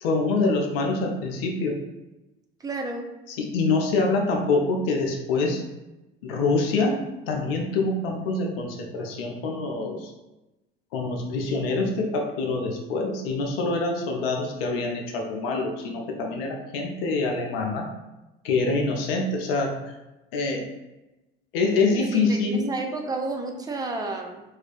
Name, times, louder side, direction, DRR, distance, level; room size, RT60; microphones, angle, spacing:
voice 1, 0.0-1.7 3.3-5.6 6.2-10.1 10.9-17.9 18.4-19.9 20.3-20.6 21.5-22.7, left 3 dB, 70° left, 2 dB, 0.5 m, -25 dB
voice 2, 2.6-3.1 22.1-24.4, right 3 dB, 15° right, 3 dB, 0.3 m, -31 dB
2.4 x 2.2 x 2.4 m, 1.0 s
figure-of-eight pair, 60°, 30 cm